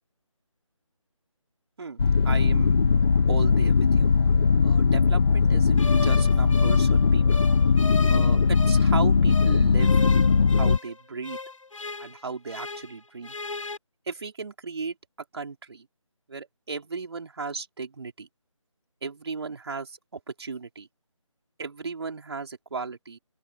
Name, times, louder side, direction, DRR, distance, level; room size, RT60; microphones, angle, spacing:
voice 1, 1.8-2.8 3.3-4.1 4.6-7.4 8.1-10.0 10.6-11.4 12.0-13.3 14.1-15.0 15.3-15.9 16.3-18.3 19.0-20.9 21.6-23.2, right 4 dB, 50° right, 4.2 m, -36 dB
sound 1, 2.0-10.8, left 5 dB, 45° left, 0.9 m, -20 dB
sound 2, 5.8-9.0 9.3-13.0 13.2-13.8, left 3 dB, 70° left, 1.4 m, -37 dB
open air
figure-of-eight pair, 160°, 17 cm